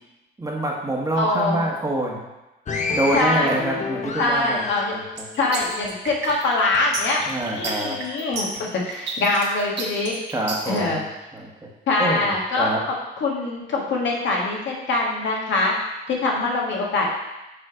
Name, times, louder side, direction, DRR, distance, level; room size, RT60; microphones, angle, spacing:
voice 1, 0.4-2.2 2.9-4.6 7.3-8.0 10.3-11.1 11.3-11.7 12.0-12.8, right 1 dB, 15° right, -1 dB, 1.2 m, -26 dB
voice 2, 1.2-1.6 3.1-3.5 4.2-4.9 5.4-7.2 7.5-8.5 8.8-10.1 10.6-11.0 11.9-15.7 16.1-17.1, left 3 dB, 70° left, -2 dB, 1.4 m, -23 dB
sound 1, 2.7-6.4 6.7-7.7 8.3-8.6, left 3 dB, 35° left, 0.8 m, -30 dB
sound 2, 5.2-10.8, right 3 dB, 60° right, 1.3 m, -31 dB
6.8 x 3.1 x 4.9 m, 1.0 s
cardioid pair, 90°, 20 cm